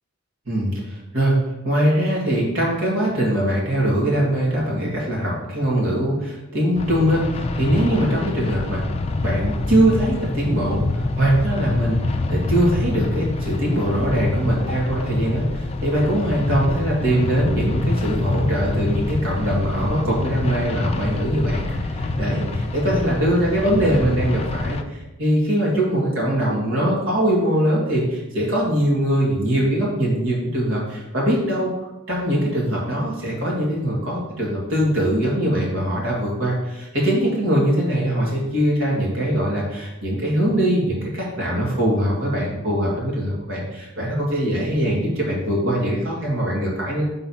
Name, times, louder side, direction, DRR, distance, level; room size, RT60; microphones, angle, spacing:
voice 1, 0.5-1.4 1.6-8.8 9.2-31.7 32.1-47.0, right 1 dB, 65° right, -4 dB, 2.0 m, -22 dB
sound 1, 6.8-24.8, left 2 dB, 30° left, 0.4 m, -25 dB
6.1 x 3.9 x 4.2 m, 0.97 s
head